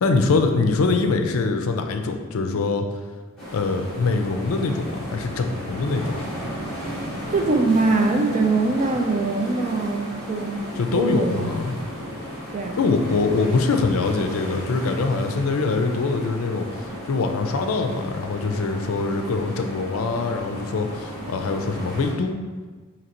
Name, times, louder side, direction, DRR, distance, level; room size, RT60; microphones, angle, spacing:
voice 1, 0.0-2.8 3.5-6.2 10.8-11.8 12.8-22.4, left 3 dB, 75° left, 6 dB, 0.4 m, -23 dB
sound 1, 3.4-22.1, equal, 5° left, 1.2 m, -34 dB
voice 2, 7.3-10.7 11.0-11.5 12.5-12.8, right 3 dB, 35° right, 3 dB, 0.4 m, -22 dB
5.2 x 2.9 x 2.9 m, 1.4 s
head